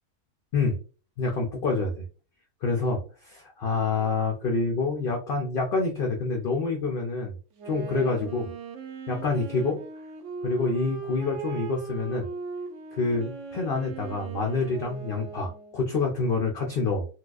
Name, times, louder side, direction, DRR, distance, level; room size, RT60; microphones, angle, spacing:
voice 1, 1.2-2.1 2.6-7.3 7.6-8.5 9.1-9.8 10.4-12.3 12.9-17.1, left 3 dB, 60° left, 2 dB, 0.6 m, -27 dB
Wind instrument woodwind instrument, 7.5-15.9, right 5 dB, 65° right, 1.0 m, -38 dB
4.1 x 2.3 x 2.4 m, 0.37 s
omnidirectional pair, 1.4 m